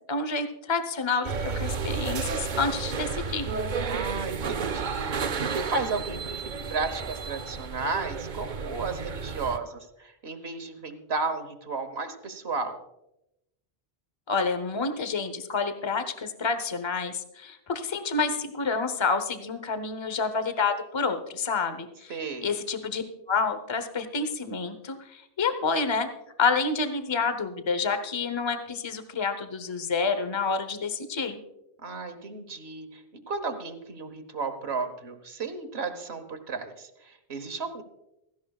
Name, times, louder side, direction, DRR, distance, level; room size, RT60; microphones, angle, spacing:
voice 1, 0.1-3.5 14.3-23.0 23.3-26.1 26.4-31.4, left 4 dB, 30° left, 9 dB, 0.9 m, -28 dB
sound 1, 1.2-9.6, right 5 dB, 50° right, 0.8 m, -32 dB
voice 2, 3.9-12.8 22.1-22.5 31.8-37.8, right 4 dB, 75° right, 8 dB, 1.4 m, -34 dB
16.5 x 15.0 x 2.4 m, 0.88 s
omnidirectional pair, 1.1 m